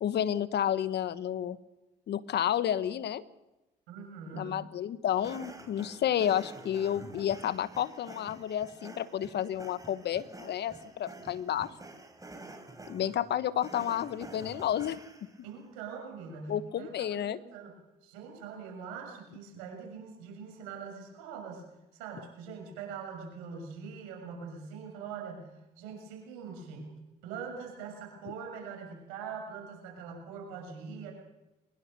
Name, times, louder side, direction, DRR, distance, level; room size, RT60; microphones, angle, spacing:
voice 1, 0.0-1.6 2.1-3.2 4.3-11.7 12.9-15.0 16.5-17.4, left 10 dB, 65° left, 15 dB, 1.2 m, -31 dB
voice 2, 3.9-4.5 15.4-17.7 18.0-21.6 21.9-25.5 25.8-26.9 27.2-31.1, right 6 dB, 85° right, 2 dB, 6.6 m, -43 dB
sound 1, 5.2-15.4, right 2 dB, 20° right, 4.4 m, -49 dB
22.5 x 21.0 x 6.7 m, 0.99 s
hypercardioid pair, 50°, 19 cm